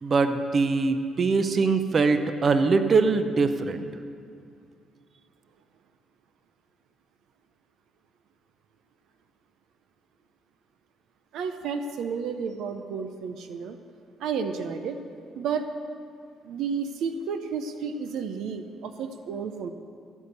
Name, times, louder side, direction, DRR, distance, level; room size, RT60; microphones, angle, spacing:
voice 1, 0.0-3.9, right 4 dB, 40° right, 9 dB, 0.7 m, -22 dB
voice 2, 11.3-13.8 14.2-15.0 15.4-15.7 16.4-19.7, right 6 dB, 75° right, 8 dB, 0.6 m, -31 dB
15.5 x 5.5 x 8.0 m, 2.3 s
cardioid pair, 95°, 0 cm